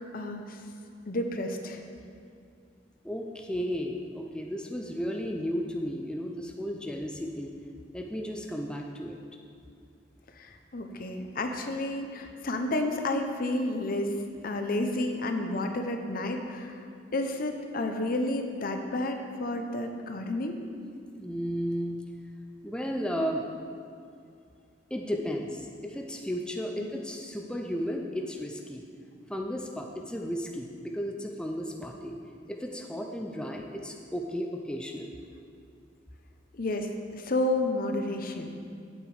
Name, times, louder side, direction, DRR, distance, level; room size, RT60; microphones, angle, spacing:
voice 1, 0.1-0.6 1.1-1.8 10.3-14.1 14.4-16.9 17.1-20.6 26.8-26.9 36.6-38.5, left 2 dB, 50° left, 5 dB, 0.8 m, -31 dB
voice 2, 3.0-7.5 7.9-9.2 21.1-22.0 22.6-23.4 24.9-28.8 29.3-32.2 32.5-35.2, equal, 5° left, 1 dB, 0.5 m, -34 dB
8.9 x 8.0 x 4.9 m, 2.3 s
head